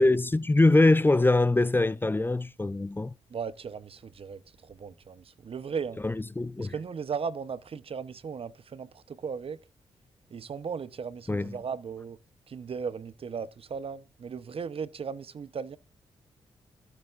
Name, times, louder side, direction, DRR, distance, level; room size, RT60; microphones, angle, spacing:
voice 1, 0.0-3.1 6.0-6.7 11.3-11.6, left 2 dB, 15° left, 0.6 m, -23 dB
voice 2, 3.3-6.0 6.6-9.6 10.3-12.2 12.5-15.8, right 6 dB, 50° right, 0.9 m, -37 dB
15.5 x 8.2 x 2.5 m
hypercardioid pair, 40°, 12 cm